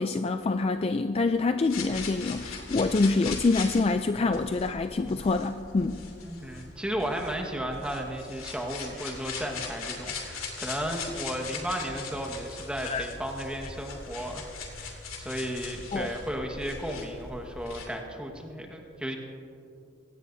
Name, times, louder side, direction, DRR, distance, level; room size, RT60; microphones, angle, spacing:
voice 1, 0.0-6.0 12.8-13.0 15.9-16.1, left 3 dB, 30° left, 8 dB, 0.3 m, -26 dB
sound 1, 1.7-17.9, left 4 dB, 90° left, 2.9 m, -40 dB
voice 2, 6.2-19.1, equal, 5° right, 2 dB, 1.5 m, -34 dB
25.0 x 17.5 x 2.7 m, 2.6 s
head